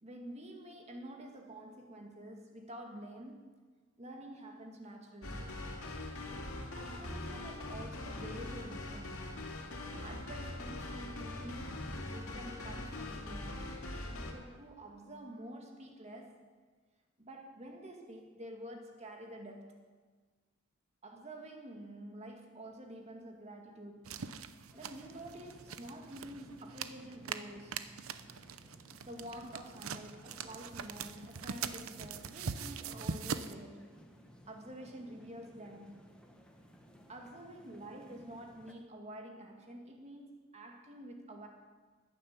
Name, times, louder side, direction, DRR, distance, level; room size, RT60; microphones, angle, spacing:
voice 1, 0.0-3.5 4.0-5.6 6.7-9.3 10.0-16.4 17.2-19.8 21.0-24.2 24.7-28.0 29.0-34.0 34.5-36.1 37.1-41.5, right 1 dB, 30° right, 2.0 m, -48 dB
sound 1, 5.2-14.3, left 2 dB, 85° left, 2.7 m, -42 dB
sound 2, 24.0-33.5, right 6 dB, 85° right, 0.7 m, -43 dB
sound 3, 24.7-38.7, equal, 5° left, 1.3 m, -59 dB
15.0 x 10.5 x 7.3 m
head